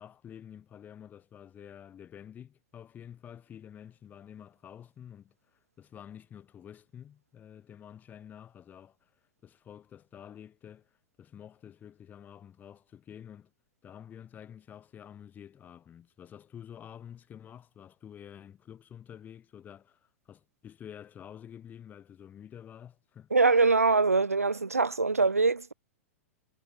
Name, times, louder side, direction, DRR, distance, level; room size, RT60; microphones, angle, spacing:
voice 1, 0.0-9.1 9.4-13.5 13.8-23.3, left 9 dB, 20° left, 2.9 m, -49 dB
voice 2, 23.3-25.7, right 4 dB, 85° right, 0.4 m, -23 dB
figure-of-eight pair, 100°, 8 cm